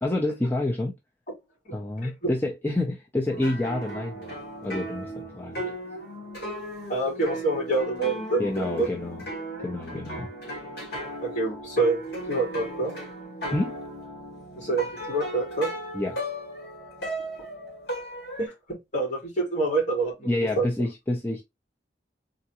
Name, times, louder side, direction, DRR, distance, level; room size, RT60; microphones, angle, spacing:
voice 1, 0.0-0.9 1.7-4.3 4.6-5.8 8.4-9.2 9.6-10.3 13.5-13.8 15.9-16.2 20.3-21.4, left 2 dB, 10° left, 0.6 m, -28 dB
voice 2, 1.7-2.3 6.9-8.9 11.2-12.0 12.3-12.9 14.5-15.7 18.4-20.3 20.6-20.7, right 2 dB, 45° left, 2.9 m, -27 dB
sound 1, 3.3-18.5, right 1 dB, 60° left, 2.1 m, -36 dB
3.9 x 3.5 x 2.9 m
head